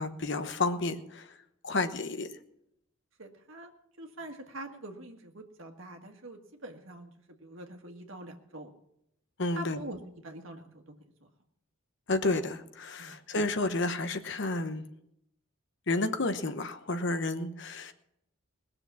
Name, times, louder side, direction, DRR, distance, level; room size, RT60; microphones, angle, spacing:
voice 1, 0.0-1.3 1.6-2.3 9.4-9.8 12.1-14.8 15.9-17.9, left 2 dB, 60° left, 9 dB, 1.0 m, -31 dB
voice 2, 3.2-3.7 4.0-7.1 7.4-8.7 9.6-10.9 11.2-11.3 13.0-13.2, right 1 dB, 65° right, 4 dB, 1.7 m, -45 dB
19.0 x 6.9 x 7.0 m, 0.77 s
head